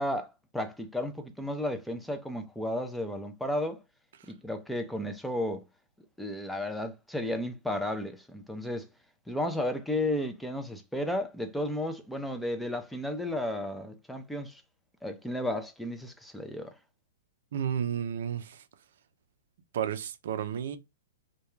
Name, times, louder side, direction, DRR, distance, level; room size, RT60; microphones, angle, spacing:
voice 1, 0.0-3.8 4.3-5.6 6.2-8.9 9.3-14.6 15.0-16.7, left 1 dB, ahead, 0.4 m, -33 dB
voice 2, 17.5-18.6 19.7-20.8, right 8 dB, 65° right, 0.4 m, -32 dB
2.2 x 2.2 x 3.0 m
hypercardioid pair, 130°, 0 cm